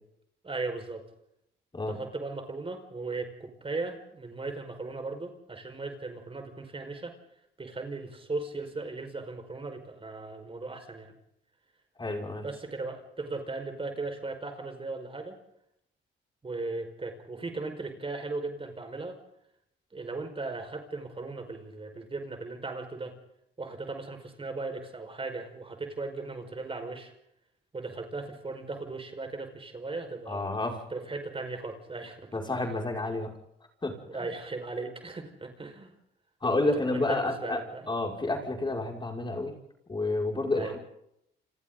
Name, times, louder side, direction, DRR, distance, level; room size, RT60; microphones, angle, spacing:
voice 1, 0.4-1.1 1.9-7.2 7.6-11.1 12.4-15.4 16.4-19.2 19.9-23.1 23.6-27.1 27.7-30.5 30.9-32.3 34.1-35.9 36.9-37.8 40.6-40.8, right 3 dB, 25° right, 6 dB, 5.2 m, -37 dB
voice 2, 12.0-12.5 30.3-30.8 32.3-33.3 33.8-34.0 36.4-39.5 39.9-40.9, left 2 dB, 25° left, 1 dB, 6.0 m, -30 dB
29.5 x 26.5 x 4.0 m, 0.78 s
cardioid pair, 90°, 20 cm